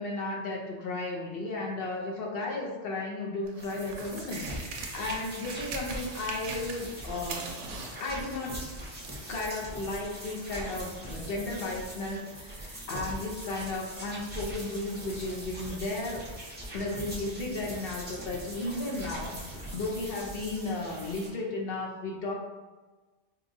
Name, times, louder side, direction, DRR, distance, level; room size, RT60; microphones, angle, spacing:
voice 1, 0.0-7.4 8.0-8.6 9.3-16.2 16.7-22.3, left 2 dB, 55° left, -1 dB, 0.9 m, -34 dB
sound 1, 3.4-7.0 7.2-9.3 10.1-10.2, right 4 dB, 75° right, 0.9 m, -41 dB
sound 2, 3.6-21.3, right 1 dB, 10° right, 0.7 m, -41 dB
4.6 x 2.3 x 2.6 m, 1.3 s
omnidirectional pair, 1.3 m